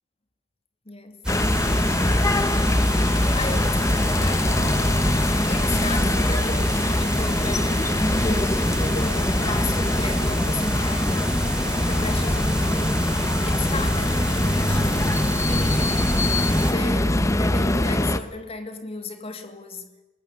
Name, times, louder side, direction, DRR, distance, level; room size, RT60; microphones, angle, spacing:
voice 1, 0.9-1.2 1.7-2.1 2.5-11.5 11.8-14.9 15.5-16.4 16.7-20.0, left 3 dB, 35° left, 2.8 m, -35 dB
sound 1, 1.2-16.7, equal, 5° right, 3.4 m, -27 dB
sound 2, 1.3-18.2, left 1 dB, 15° left, 1.0 m, -23 dB
24.0 x 20.5 x 8.8 m
head